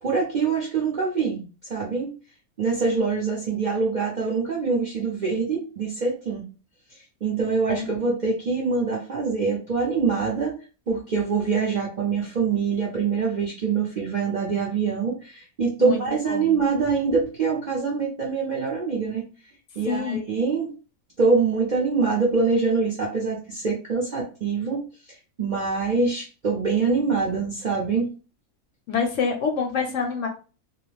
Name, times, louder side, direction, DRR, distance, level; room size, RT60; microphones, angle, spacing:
voice 1, 0.0-2.1 2.6-6.4 7.2-10.6 10.9-19.2 19.8-20.7 21.2-24.8 25.4-28.1, right 4 dB, 55° right, -3 dB, 0.5 m, -24 dB
voice 2, 16.3-16.6 19.8-20.2 28.9-30.3, left 5 dB, 70° left, 3 dB, 0.8 m, -26 dB
2.3 x 2.1 x 3.1 m, 0.34 s
omnidirectional pair, 1.6 m